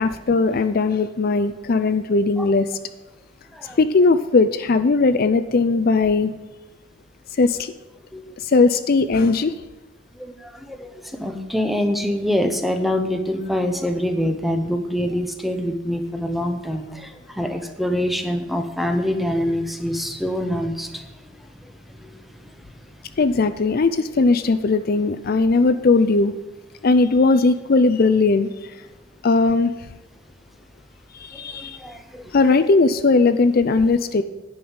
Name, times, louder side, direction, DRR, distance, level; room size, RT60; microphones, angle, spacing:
voice 1, 0.0-2.7 3.8-6.3 7.4-7.7 8.5-9.5 23.2-26.3 26.8-28.5 29.2-29.7 31.2-31.8 32.3-34.2, left 3 dB, 50° left, 11 dB, 0.4 m, -18 dB
voice 2, 11.2-17.1 17.4-21.0 31.8-32.2, left 1 dB, ahead, 6 dB, 0.8 m, -24 dB
10.0 x 5.5 x 7.9 m, 1.1 s
head